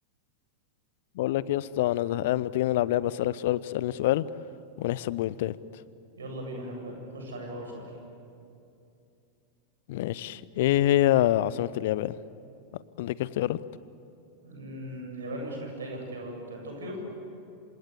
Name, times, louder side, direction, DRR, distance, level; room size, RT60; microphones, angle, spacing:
voice 1, 1.2-4.2 4.8-5.5 9.9-12.1 13.0-13.6, left 14 dB, 55° left, 19 dB, 0.7 m, -26 dB
voice 2, 6.2-7.9 14.4-17.0, right 1 dB, 70° right, 2 dB, 7.9 m, -38 dB
27.0 x 27.0 x 8.3 m, 2.7 s
figure-of-eight pair, 90°, 0 cm